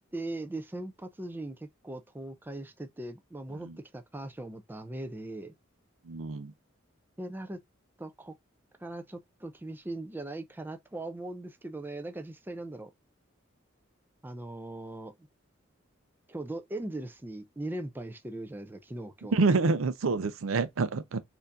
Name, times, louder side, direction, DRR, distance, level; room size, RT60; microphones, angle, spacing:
voice 1, 0.1-5.5 7.2-7.6 8.0-8.3 8.8-12.9 14.2-15.3 16.3-19.5, right 2 dB, 10° right, 0.4 m, -39 dB
voice 2, 6.1-6.5 19.3-21.2, right 3 dB, 85° right, 0.5 m, -27 dB
4.3 x 2.6 x 2.5 m
head